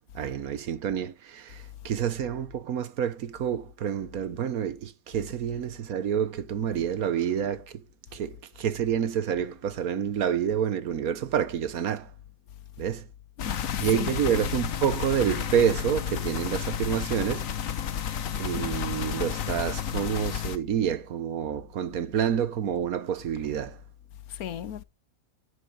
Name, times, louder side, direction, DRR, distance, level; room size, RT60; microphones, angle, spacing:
voice 1, 0.1-7.8 8.1-12.1 12.8-13.1 13.8-17.5 18.4-23.8, right 8 dB, 80° right, 1.5 m, -28 dB
voice 2, 13.4-14.2 18.1-18.8 24.3-24.8, left 9 dB, 85° left, 1.4 m, -36 dB
sound 1, 13.4-20.6, left 9 dB, 65° left, 1.4 m, -31 dB
10.0 x 9.7 x 5.0 m
omnidirectional pair, 1.5 m